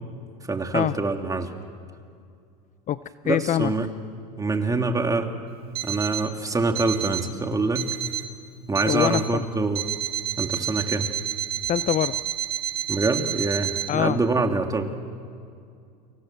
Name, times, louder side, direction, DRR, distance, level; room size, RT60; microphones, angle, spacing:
voice 1, 0.5-1.5 3.2-3.9 4.4-5.3 5.8-7.9 8.7-9.8 10.4-11.1 12.9-14.9, right 3 dB, 15° right, 5 dB, 2.7 m, -25 dB
voice 2, 3.3-3.7 8.8-9.4 11.7-12.2 13.9-14.2, left 12 dB, 35° left, 15 dB, 0.6 m, -24 dB
Alarm, 5.7-6.3 6.7-7.3 7.7-8.3 8.7-9.3 9.7-13.9, right 11 dB, 45° right, 2.6 m, -30 dB
29.5 x 25.5 x 7.6 m, 2.3 s
hypercardioid pair, 95°, 21 cm